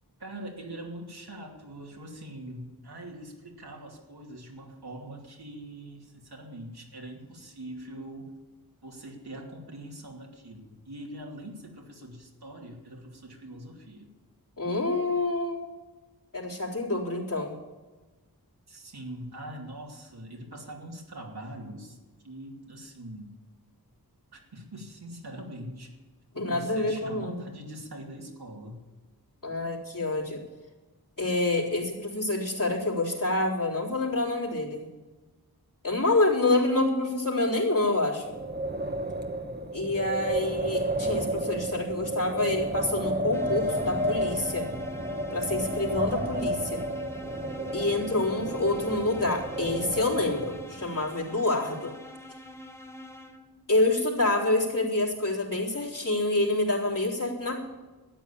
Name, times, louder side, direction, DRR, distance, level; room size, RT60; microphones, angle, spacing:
voice 1, 0.2-8.4 8.8-14.2 18.7-22.0 22.2-23.4 24.3-25.9 26.3-28.8, right 1 dB, 80° right, -1 dB, 2.8 m, -43 dB
voice 2, 14.6-15.7 16.3-17.5 26.3-27.3 29.4-30.4 31.2-34.9 35.8-38.3 39.7-44.7 45.3-46.8 47.7-51.9 53.7-57.6, left 2 dB, 55° left, -5 dB, 3.9 m, -27 dB
Wind, 38.2-50.9, right 1 dB, 25° right, 1.2 m, -31 dB
sound 1, 43.3-53.7, left 1 dB, 5° left, 1.3 m, -44 dB
13.0 x 9.5 x 8.6 m, 1.2 s
wide cardioid pair, 60°, 38 cm